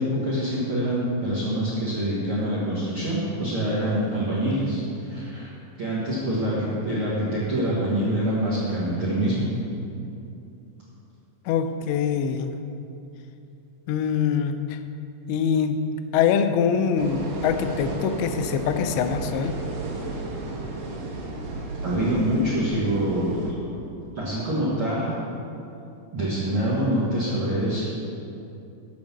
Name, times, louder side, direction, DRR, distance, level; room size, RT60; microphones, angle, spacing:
voice 1, 0.0-5.5 5.8-9.5 21.8-23.6 24.1-25.1 26.1-27.9, right 1 dB, 60° right, -9 dB, 1.4 m, -25 dB
voice 2, 11.5-12.5 13.9-14.8 15.3-15.8 16.1-19.6, left 7 dB, 90° left, 8 dB, 2.5 m, -24 dB
sound 1, 17.0-23.5, right 3 dB, 85° right, 3.0 m, -33 dB
7.7 x 5.2 x 7.1 m, 2.7 s
omnidirectional pair, 4.4 m